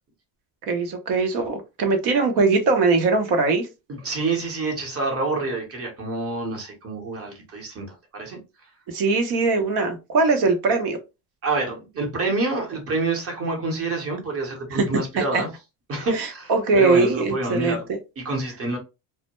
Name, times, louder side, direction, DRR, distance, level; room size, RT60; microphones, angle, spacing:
voice 1, 0.7-3.7 8.9-11.0 14.7-14.9 15.2-15.4 16.1-18.0, right 3 dB, 55° right, 0.8 m, -21 dB
voice 2, 3.9-8.4 11.4-15.5 15.9-17.9 18.2-18.8, right 3 dB, 30° right, 0.9 m, -27 dB
2.2 x 2.0 x 2.9 m
cardioid pair, 125°, 48 cm